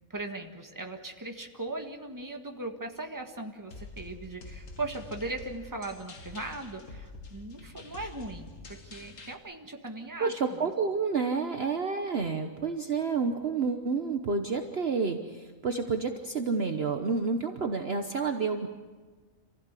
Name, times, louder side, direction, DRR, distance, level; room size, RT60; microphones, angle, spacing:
voice 1, 0.1-10.7, right 2 dB, 15° right, 3 dB, 1.7 m, -39 dB
sound 1, 3.7-9.3, left 3 dB, 65° left, 2.0 m, -46 dB
voice 2, 10.2-18.7, right 4 dB, 50° right, 5 dB, 1.2 m, -29 dB
27.0 x 16.0 x 8.3 m, 1.4 s
omnidirectional pair, 1.5 m